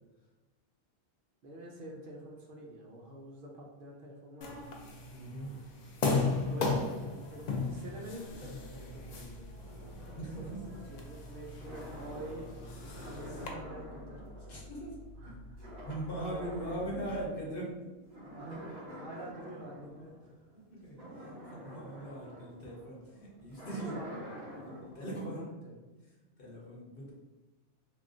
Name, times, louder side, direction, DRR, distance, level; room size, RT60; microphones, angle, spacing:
voice 1, 1.4-4.6 6.0-9.5 10.5-14.2 14.6-14.7 15.2-15.4 15.8-16.8 18.3-20.4 23.8-24.6 25.2-25.8, right 1 dB, 60° right, -1 dB, 0.6 m, -47 dB
sound 1, 4.4-13.5, left 3 dB, 80° left, 0.3 m, -37 dB
voice 2, 5.1-5.5 9.9-10.4 14.5-14.9 15.2-15.3 15.9-17.8 18.9-19.0 20.7-24.0 24.5-25.5 26.4-27.1, right 1 dB, 50° left, -4 dB, 1.0 m, -40 dB
sound 2, 8.3-17.3, left 1 dB, 5° left, 0.4 m, -51 dB
sound 3, 8.9-15.3 15.6-17.6 18.0-25.2, equal, 35° right, 1.5 m, -49 dB
3.6 x 2.3 x 2.4 m, 1.1 s
omnidirectional pair, 1.3 m